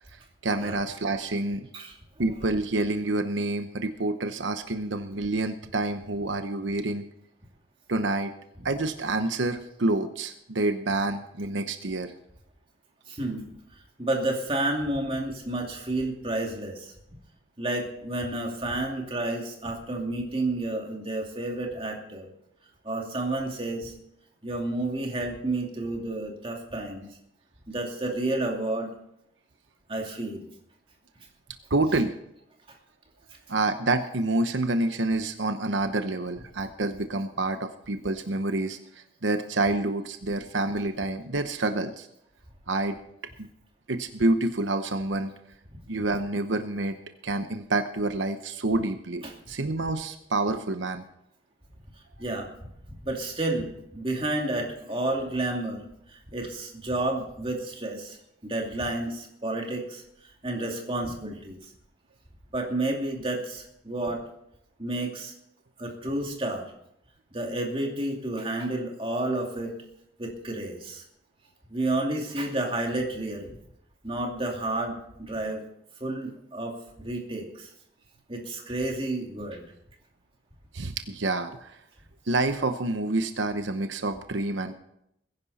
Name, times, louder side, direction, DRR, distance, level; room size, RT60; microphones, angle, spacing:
voice 1, 0.4-1.6 2.2-7.0 7.9-8.3 8.6-12.1 31.7-32.1 33.5-42.1 42.7-43.0 43.4-43.5 43.9-45.3 45.9-47.0 47.2-51.0 80.7-81.8 82.3-84.7, right 2 dB, 85° right, 8 dB, 0.9 m, -28 dB
voice 2, 13.1-13.4 14.0-16.9 17.6-22.3 22.8-23.9 24.4-27.0 27.7-28.9 29.9-30.4 32.7-32.8 49.2-49.3 52.2-52.5 53.0-55.8 56.1-58.2 58.4-60.0 60.4-61.6 62.5-64.2 64.8-65.3 65.8-66.7 67.3-69.7 70.2-71.0 71.7-73.6 74.0-75.6 76.0-77.7 78.3-79.7, right 2 dB, 30° right, 1 dB, 2.5 m, -30 dB
21.0 x 10.5 x 4.2 m, 0.76 s
head